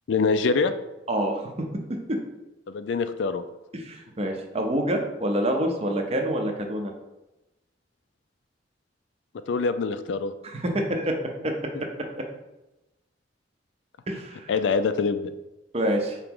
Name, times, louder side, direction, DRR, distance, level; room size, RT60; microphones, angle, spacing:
voice 1, 0.1-0.7 2.7-3.4 9.5-10.3 14.5-15.3, left 4 dB, 80° left, 11 dB, 0.4 m, -24 dB
voice 2, 1.1-1.5 3.7-6.9 10.4-11.1 11.4-11.5 14.1-14.5 15.7-16.2, right 1 dB, 35° right, 3 dB, 0.6 m, -27 dB
4.8 x 2.9 x 3.6 m, 0.98 s
head